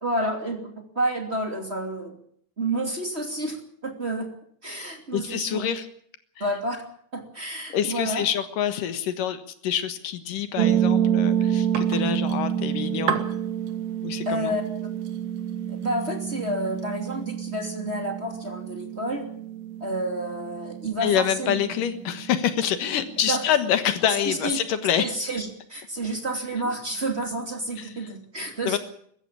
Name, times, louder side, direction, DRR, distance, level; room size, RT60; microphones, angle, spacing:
voice 1, 0.0-2.1 2.6-3.6 3.8-4.3 4.6-5.7 6.4-6.8 7.1-8.3 14.3-14.9 15.7-19.3 19.8-21.5 23.3-23.4 24.3-24.6 25.0-28.8, right 1 dB, 20° right, 3 dB, 2.7 m, -30 dB
voice 2, 5.1-5.9 7.7-13.2 14.0-14.6 21.0-25.1 27.8-28.1 28.6-28.8, left 9 dB, 85° left, 10 dB, 3.1 m, -26 dB
sound 1, 10.6-23.4, right 9 dB, 85° right, 3.2 m, -28 dB
sound 2, 11.3-17.2, right 7 dB, 60° right, 2.6 m, -36 dB
21.5 x 15.0 x 8.5 m, 0.65 s
omnidirectional pair, 3.7 m